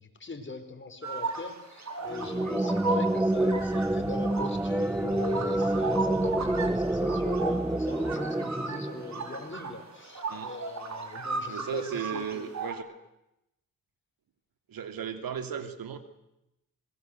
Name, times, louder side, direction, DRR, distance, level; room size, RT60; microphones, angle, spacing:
voice 1, 0.0-12.7, left 3 dB, 35° left, 6 dB, 4.6 m, -41 dB
sound 1, 1.0-12.7, right 4 dB, 50° right, 4.8 m, -37 dB
sound 2, 2.1-9.5, right 1 dB, 5° right, 0.8 m, -28 dB
voice 2, 11.5-12.8 14.7-16.0, right 8 dB, 75° right, 9 dB, 2.8 m, -35 dB
26.5 x 22.5 x 8.0 m, 0.87 s
cardioid pair, 75°, 35 cm